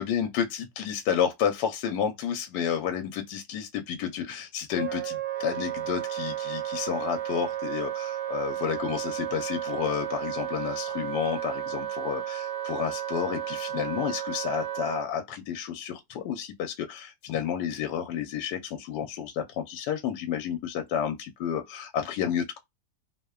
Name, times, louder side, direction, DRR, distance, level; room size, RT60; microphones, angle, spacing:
voice 1, 0.0-22.6, left 8 dB, 75° left, 1.1 m, -31 dB
Wind instrument woodwind instrument, 4.8-15.1, right 11 dB, 65° right, 1.0 m, -33 dB
2.9 x 2.1 x 2.2 m
omnidirectional pair, 1.9 m